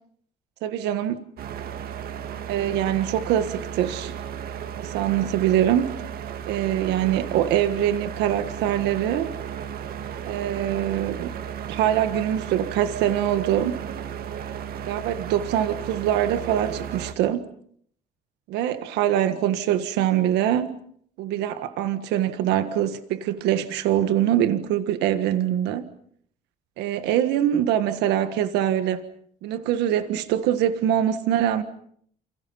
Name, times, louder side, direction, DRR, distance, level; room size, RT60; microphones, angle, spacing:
voice 1, 0.6-1.3 2.5-4.1 4.8-5.9 6.4-9.3 10.2-11.3 11.7-13.8 14.9-17.5 18.5-20.7 21.2-25.9 26.8-29.0 29.4-31.6, right 11 dB, 90° right, 1.6 m, -23 dB
sound 1, 1.4-17.1, right 8 dB, 60° right, 1.9 m, -34 dB
28.0 x 28.0 x 5.7 m
cardioid pair, 110°, 17 cm